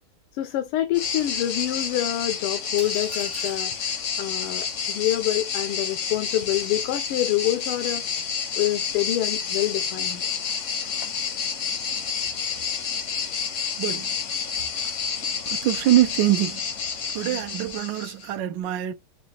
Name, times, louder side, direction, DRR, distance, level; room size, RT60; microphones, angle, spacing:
voice 1, 0.3-8.0 8.6-10.3, left 14 dB, 85° left, 1.5 m, -27 dB
sound 1, 0.9-18.3, left 6 dB, 60° left, 0.7 m, -29 dB
sound 2, 2.8-3.8, right 5 dB, 55° right, 0.9 m, -41 dB
voice 2, 13.8-14.1 15.5-16.6 17.1-18.9, right 14 dB, 75° right, 1.1 m, -24 dB
5.1 x 2.3 x 2.8 m
omnidirectional pair, 2.4 m